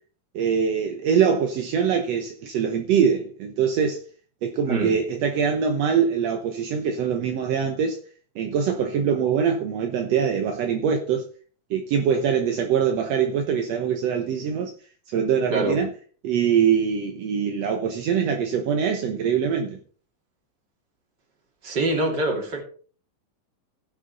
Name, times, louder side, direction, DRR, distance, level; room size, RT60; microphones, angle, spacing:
voice 1, 0.3-4.0 4.4-8.0 8.3-11.2 11.7-14.7 15.1-15.9 16.2-19.8, right 7 dB, 65° right, 1.7 m, -23 dB
voice 2, 21.6-22.7, right 2 dB, 30° right, 2.7 m, -24 dB
16.0 x 6.6 x 4.0 m
omnidirectional pair, 4.1 m